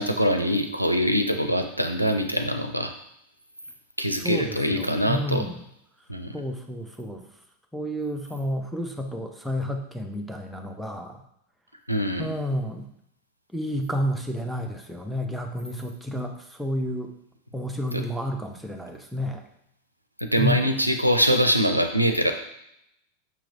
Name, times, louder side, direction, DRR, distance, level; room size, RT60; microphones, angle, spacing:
voice 1, 0.0-2.9 4.0-5.4 6.1-6.4 11.9-12.3 17.9-18.0 20.3-22.3, equal, 90° right, 6 dB, 0.4 m, -23 dB
voice 2, 4.2-5.7 6.3-7.3 7.7-11.2 12.2-12.9 13.5-17.1 17.5-19.4 20.4-20.8, equal, ahead, 2 dB, 0.6 m, -30 dB
5.7 x 3.0 x 2.6 m, 0.77 s
figure-of-eight pair, 90°, 0 cm